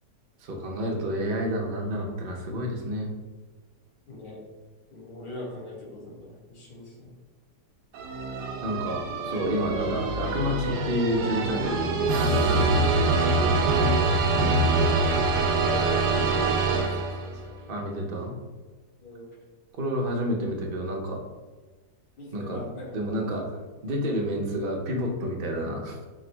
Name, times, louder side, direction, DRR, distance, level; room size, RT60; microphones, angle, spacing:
voice 1, 0.4-3.1 8.6-12.6 17.7-18.3 19.7-21.2 22.3-22.7 22.9-23.5 23.8-26.0, equal, 55° right, -1 dB, 0.6 m, -29 dB
voice 2, 4.1-4.4 4.9-7.1 13.1-14.5 15.0-15.1 15.5-16.0 16.3-17.7 19.0-19.3 22.2-22.9, equal, 85° left, -6 dB, 2.2 m, -41 dB
sound 1, 7.9-17.4, right 2 dB, 80° right, 1.2 m, -24 dB
4.9 x 2.0 x 4.4 m, 1.3 s
omnidirectional pair, 1.9 m